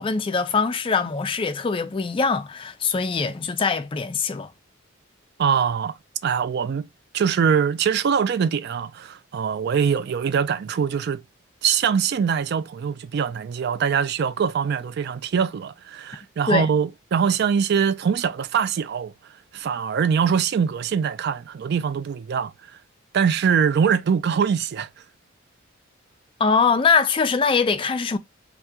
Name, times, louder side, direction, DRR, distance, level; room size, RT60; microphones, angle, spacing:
voice 1, 0.0-4.5 16.5-16.7 26.4-28.2, left 5 dB, 25° left, 0.3 m, -22 dB
voice 2, 5.4-6.0 6.2-6.9 7.1-11.2 11.6-19.1 19.5-22.5 23.1-24.9, right 7 dB, 55° right, 0.3 m, -23 dB
2.8 x 2.2 x 3.5 m
head